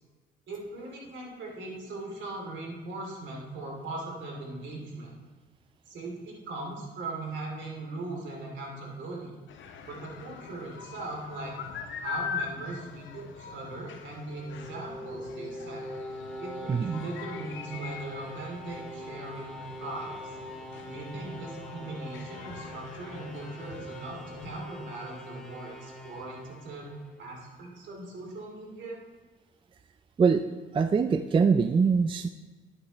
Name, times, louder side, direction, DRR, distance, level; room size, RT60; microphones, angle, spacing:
voice 1, 0.5-5.1 5.9-9.3 9.8-11.5 12.0-15.8 16.4-20.3 20.9-26.9 27.2-29.0, right 2 dB, 70° right, -1 dB, 2.7 m, -39 dB
sound 1, 9.5-24.6, left 7 dB, 70° left, 0.7 m, -43 dB
sound 2, 14.3-27.3, equal, ahead, 1.6 m, -43 dB
voice 2, 16.7-17.0 30.2-30.4 30.7-32.3, right 5 dB, 25° right, 10 dB, 0.3 m, -23 dB
9.9 x 8.5 x 3.0 m, 1.4 s
cardioid pair, 90°, 20 cm